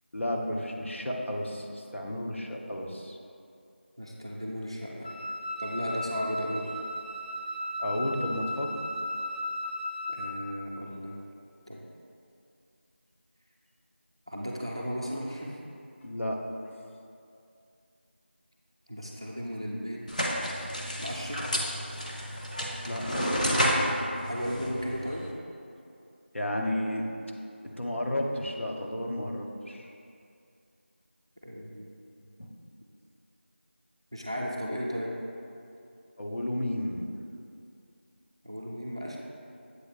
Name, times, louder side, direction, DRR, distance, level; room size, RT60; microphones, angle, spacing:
voice 1, 0.1-3.2 7.8-8.7 16.0-16.4 22.9-23.4 26.3-27.1 27.6-29.9 32.4-32.6 36.2-37.1, left 1 dB, 85° left, 0 dB, 1.0 m, -32 dB
voice 2, 4.0-5.1 5.6-6.7 10.1-11.1 11.7-11.8 14.3-15.6 18.9-20.3 21.0-21.4 24.2-25.3 31.4-31.9 32.2-32.3 34.1-35.1 38.4-39.2, equal, 25° right, -2 dB, 0.4 m, -35 dB
Wind instrument woodwind instrument, 5.0-10.4, left 1 dB, 60° left, 1.3 m, -35 dB
sound 1, 20.1-25.3, equal, 40° left, 0.8 m, -30 dB
7.9 x 2.9 x 4.9 m, 2.5 s
figure-of-eight pair, 175°, 6 cm